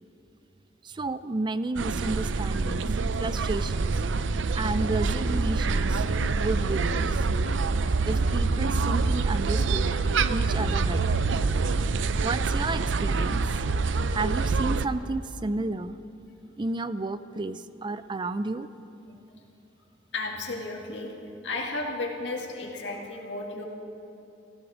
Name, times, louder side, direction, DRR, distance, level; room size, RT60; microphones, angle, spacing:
voice 1, 0.8-2.9 3.2-4.0 4.5-6.1 6.4-7.3 8.0-9.9 10.3-11.2 12.2-13.4 14.1-15.9 16.6-18.7, right 2 dB, 25° right, 14 dB, 0.4 m, -32 dB
sound 1, 1.8-14.9, right 4 dB, 80° right, 0.5 m, -26 dB
voice 2, 20.1-21.1 21.4-23.6, left 2 dB, 70° left, 0 dB, 1.9 m, -33 dB
17.5 x 14.0 x 4.9 m, 2.8 s
head